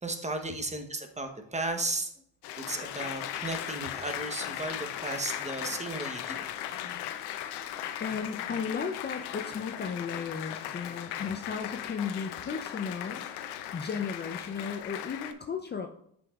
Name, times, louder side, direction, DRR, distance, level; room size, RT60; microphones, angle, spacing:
voice 1, 0.0-2.1 2.6-6.4, right 2 dB, 20° right, 6 dB, 0.9 m, -35 dB
Applause, 2.4-15.3, left 11 dB, 85° left, 0.6 m, -38 dB
voice 2, 8.0-13.2 13.7-15.9, left 6 dB, 25° left, 5 dB, 0.5 m, -35 dB
8.2 x 5.3 x 2.3 m, 0.69 s
supercardioid pair, 80°, 39 cm